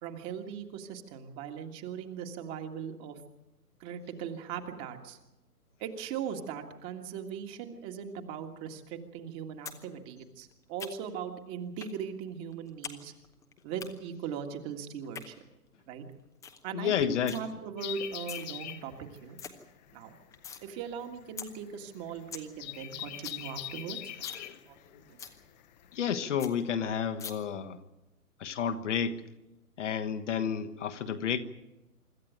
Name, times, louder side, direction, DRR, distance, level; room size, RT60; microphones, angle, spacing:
voice 1, 0.0-3.2 3.8-5.2 5.8-13.1 13.6-15.4 15.9-16.0 16.6-19.4 19.9-20.1 20.6-24.0 24.3-25.2, right 7 dB, 25° right, 1.8 m, -39 dB
sound 1, 9.7-9.8 10.1-11.2 11.8-12.0 12.3-13.0 13.2-13.9 14.9-15.3 15.7-15.8 16.1-16.2 16.4-16.6 16.9-17.4 18.0-18.5 18.9-19.0 19.2-19.5 19.9-20.6 21.0-21.1 21.4-21.5 21.9-22.0 22.1-22.5 22.8-22.9 23.1-23.4 23.7-23.8 24.1-24.5 24.8-24.9 25.2-25.4 25.8-25.9 26.1-26.2 26.4-26.5 27.2-27.3, left 7 dB, 5° left, 0.8 m, -42 dB
voice 2, 16.7-17.4 24.4-24.6 25.9-27.8 28.4-29.2 29.8-31.4, left 8 dB, 50° left, 1.4 m, -31 dB
sound 2, 17.8-26.0, left 14 dB, 30° left, 1.1 m, -43 dB
25.5 x 13.0 x 9.1 m
figure-of-eight pair, 135°, 46 cm